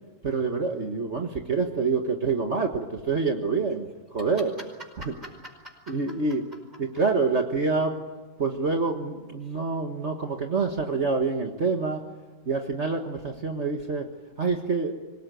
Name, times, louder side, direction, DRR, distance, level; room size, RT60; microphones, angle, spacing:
voice 1, 0.2-4.5 5.9-6.4 6.8-8.0 8.4-12.0 12.4-14.1 14.4-14.9, right 4 dB, 40° right, 4 dB, 1.7 m, -26 dB
voice 2, 4.2-6.4 6.7-6.8 9.4-9.6, equal, 25° right, 4 dB, 5.2 m, -45 dB
25.5 x 19.0 x 9.2 m, 1.2 s
omnidirectional pair, 1.9 m